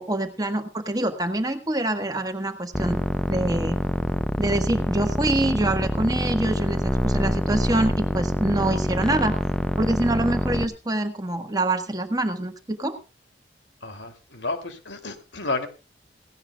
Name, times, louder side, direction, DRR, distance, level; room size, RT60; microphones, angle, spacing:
voice 1, 0.0-3.0 3.3-3.8 4.4-9.4 9.8-13.0, right 1 dB, 20° right, 6 dB, 1.5 m, -25 dB
sound 1, 2.7-10.7, equal, 5° left, 0.7 m, -25 dB
voice 2, 13.8-15.7, left 3 dB, 90° left, 7 dB, 2.9 m, -31 dB
17.5 x 16.5 x 2.4 m, 0.32 s
head